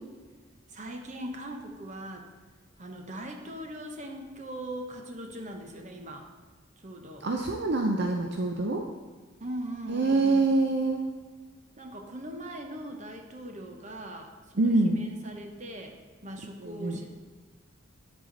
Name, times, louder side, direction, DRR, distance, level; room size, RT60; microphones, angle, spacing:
voice 1, 0.7-2.3 2.8-6.3 6.8-7.3 9.4-10.5 11.8-16.0 16.2-17.1, right 1 dB, 35° right, 3 dB, 1.0 m, -40 dB
voice 2, 7.2-8.9 9.9-11.0 14.6-15.0 16.6-17.0, right 2 dB, 55° right, 2 dB, 0.6 m, -25 dB
9.4 x 7.9 x 4.0 m, 1.4 s
head